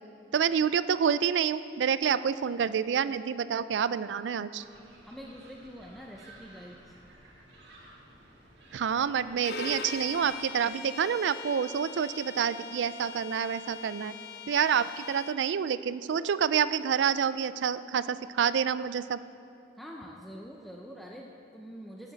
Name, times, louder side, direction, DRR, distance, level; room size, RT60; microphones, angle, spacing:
voice 1, 0.3-4.6 8.7-14.1 14.5-19.2, right 7 dB, 85° right, 15 dB, 0.4 m, -28 dB
sound 1, 4.6-10.3, right 1 dB, 65° right, 2.0 m, -54 dB
voice 2, 5.0-6.9 19.8-22.1, equal, ahead, -1 dB, 0.6 m, -45 dB
Bowed string instrument, 9.4-15.4, left 5 dB, 60° left, 0.6 m, -41 dB
16.5 x 7.5 x 4.0 m, 2.6 s
head